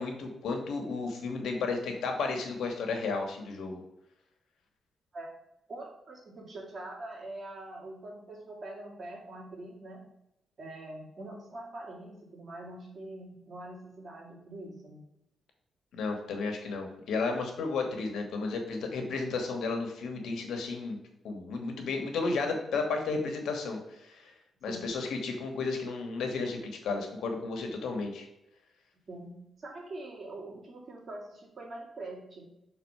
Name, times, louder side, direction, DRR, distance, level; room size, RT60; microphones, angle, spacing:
voice 1, 0.0-3.8 15.9-21.0 21.2-24.3 24.6-28.3, left 4 dB, 90° left, 3 dB, 1.3 m, -33 dB
voice 2, 5.7-10.0 10.6-15.0 24.7-25.0 29.1-32.5, right 2 dB, 45° right, -2 dB, 2.2 m, -44 dB
6.1 x 4.0 x 5.4 m, 0.86 s
cardioid pair, 95°, 0 cm